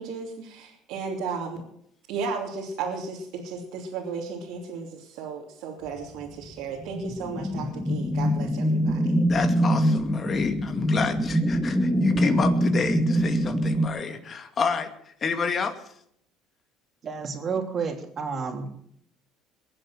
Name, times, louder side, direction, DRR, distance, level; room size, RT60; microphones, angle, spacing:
voice 1, 0.0-1.6 2.1-9.2, right 5 dB, 75° right, -2 dB, 3.1 m, -34 dB
sound 1, 6.8-13.9, equal, ahead, 1.4 m, -24 dB
voice 2, 9.3-15.8, left 5 dB, 40° left, 7 dB, 2.4 m, -29 dB
voice 3, 17.0-18.9, right 5 dB, 45° right, 4 dB, 3.2 m, -31 dB
22.0 x 7.7 x 7.7 m, 0.70 s
supercardioid pair, 85°, 0 cm